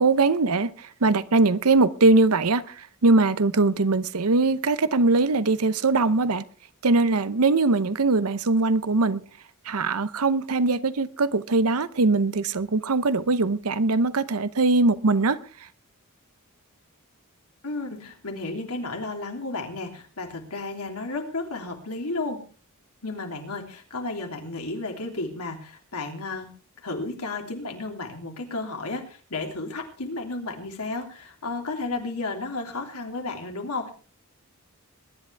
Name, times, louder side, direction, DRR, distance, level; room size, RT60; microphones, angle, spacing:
voice 1, 0.0-6.4 6.8-9.2 9.7-15.4, right 3 dB, 75° right, 0.8 m, -21 dB
voice 2, 17.6-22.4 23.0-26.5 26.8-33.9, left 3 dB, 80° left, 3.2 m, -33 dB
21.5 x 11.0 x 3.4 m
head